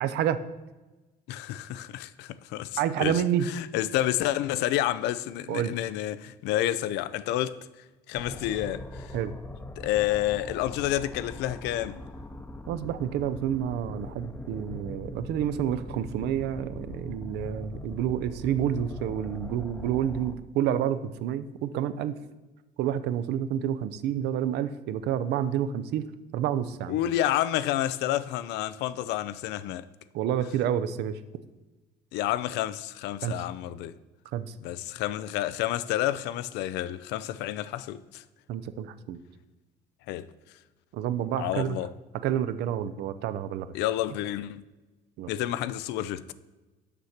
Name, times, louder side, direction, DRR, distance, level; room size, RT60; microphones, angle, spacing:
voice 1, 0.0-0.4 2.8-3.5 5.5-5.7 9.1-9.3 12.7-22.1 22.8-26.1 26.3-27.0 30.1-31.2 33.2-33.3 34.3-34.5 38.5-39.2 40.9-41.8 42.2-43.7 45.2-45.3, right 10 dB, 80° right, 0.6 m, -29 dB
voice 2, 1.3-7.6 8.1-9.1 9.8-12.0 26.9-29.9 32.1-34.0 34.6-38.2 40.1-40.3 41.4-41.9 43.7-44.6 45.3-46.3, left 13 dB, 90° left, 0.4 m, -29 dB
sound 1, 8.2-20.3, left 1 dB, 15° left, 0.6 m, -41 dB
6.8 x 5.7 x 6.5 m
cardioid pair, 110°, 17 cm